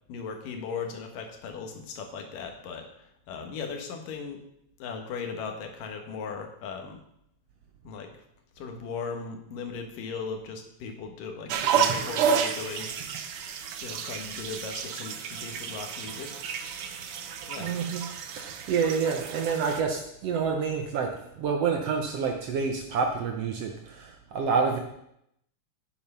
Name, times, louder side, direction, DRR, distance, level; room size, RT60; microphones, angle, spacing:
voice 1, 0.1-4.5 4.8-7.0 7.8-8.1 8.6-13.1 13.8-16.4 17.5-17.7, left 5 dB, 85° left, 3 dB, 3.0 m, -38 dB
sound 1, 11.5-19.8, right 7 dB, 85° right, 1.2 m, -31 dB
voice 2, 17.6-18.0 18.4-24.8, right 5 dB, 70° right, 3 dB, 1.6 m, -28 dB
9.5 x 7.5 x 5.6 m, 0.77 s
omnidirectional pair, 3.7 m